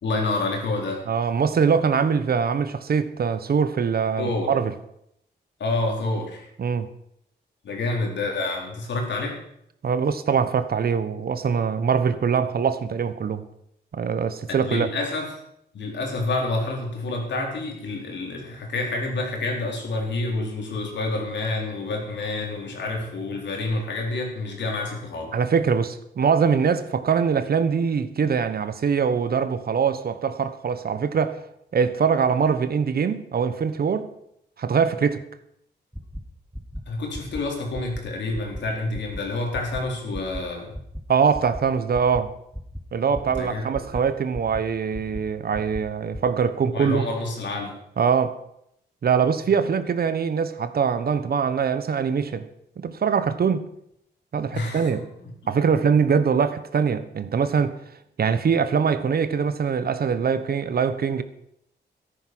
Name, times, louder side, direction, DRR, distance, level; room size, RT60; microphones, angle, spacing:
voice 1, 0.0-1.0 4.2-4.5 5.6-6.5 7.6-9.4 14.5-15.3 15.7-25.3 36.9-40.7 43.0-43.7 46.7-47.8 54.5-54.9 55.2-55.6, left 2 dB, 80° left, 4.1 m, -28 dB
voice 2, 1.1-4.7 6.6-6.9 9.8-13.5 13.9-14.9 25.3-31.4 31.7-34.1 34.6-35.2 41.1-42.3 42.9-47.0 48.0-48.3 49.0-52.5 52.8-53.7 54.3-55.0 55.5-57.8 58.2-61.2, right 6 dB, 55° right, 1.1 m, -23 dB
sound 1, 35.9-36.2 36.5-36.8 37.1-37.4 37.7-38.0 38.3-38.6 38.9-39.2 39.5-39.8 40.1-40.4 40.7-41.0 41.3-41.6 41.9-42.2 42.5-42.8 43.1-43.4 43.7-44.0 44.3-44.6 44.9-45.2 45.5-45.8 46.1-46.2, equal, ahead, 1.5 m, -34 dB
13.5 x 11.0 x 6.1 m
cardioid pair, 100°, 18 cm